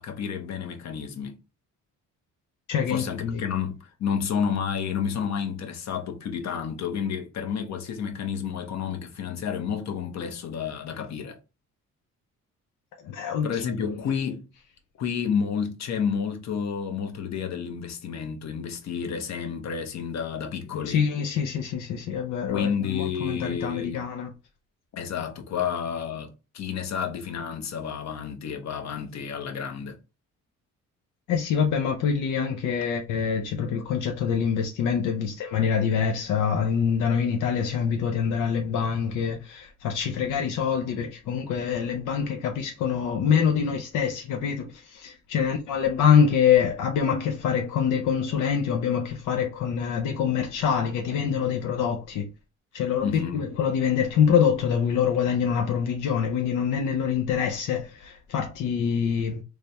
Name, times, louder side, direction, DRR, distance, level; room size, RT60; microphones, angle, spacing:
voice 1, 0.0-1.4 2.9-11.4 13.4-14.5 15.0-21.0 22.5-24.0 24.9-30.0 45.4-45.5 53.0-53.4, left 7 dB, 65° left, 0.9 m, -30 dB
voice 2, 2.7-3.4 13.0-13.6 20.8-24.3 31.3-52.3 52.7-59.4, left 7 dB, 85° left, 0.6 m, -25 dB
3.3 x 2.2 x 4.0 m
cardioid pair, 90°, 30 cm